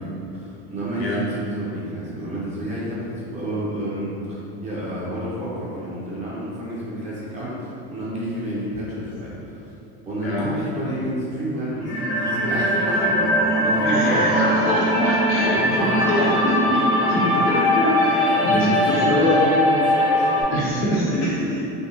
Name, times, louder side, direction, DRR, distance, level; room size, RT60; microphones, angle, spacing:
voice 1, 0.0-9.7 10.1-14.2 15.3-16.4 18.0-21.0, equal, 20° right, -8 dB, 0.7 m, -30 dB
sound 1, 11.8-20.4, equal, 90° left, 1.5 m, -21 dB
voice 2, 13.8-18.0 18.4-19.6 20.5-21.7, left 1 dB, 45° left, -4 dB, 0.6 m, -24 dB
3.5 x 2.3 x 2.7 m, 2.8 s
cardioid pair, 150°, 31 cm